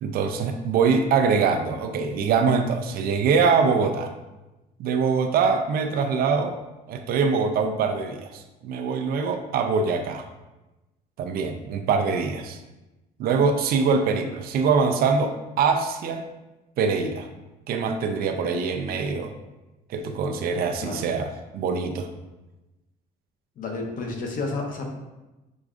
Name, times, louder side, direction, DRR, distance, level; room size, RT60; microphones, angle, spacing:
voice 1, 0.0-4.1 4.8-6.6 6.9-10.2 11.2-12.6 13.2-16.2 16.8-17.3 17.7-19.3 19.9-22.1, right 5 dB, 65° right, 6 dB, 0.4 m, -23 dB
voice 2, 23.6-25.0, left 3 dB, 55° left, 1 dB, 0.8 m, -31 dB
6.1 x 2.3 x 2.4 m, 1.0 s
cardioid pair, 110°, 17 cm